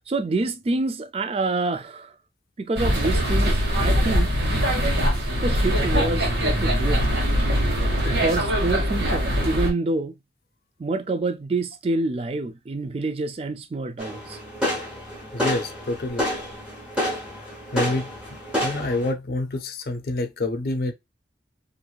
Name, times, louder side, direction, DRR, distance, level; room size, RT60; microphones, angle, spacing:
voice 1, 0.1-2.1 2.6-4.3 5.4-7.1 8.0-10.1 10.8-14.4, right 2 dB, 35° right, 0.3 m, -27 dB
sound 1, 2.8-9.7, equal, 90° right, 1.1 m, -22 dB
sound 2, 14.0-19.1, left 1 dB, 5° right, 1.1 m, -29 dB
voice 2, 15.3-16.3 17.7-18.1 18.6-20.9, left 2 dB, 55° left, 0.5 m, -27 dB
3.0 x 2.5 x 2.3 m
head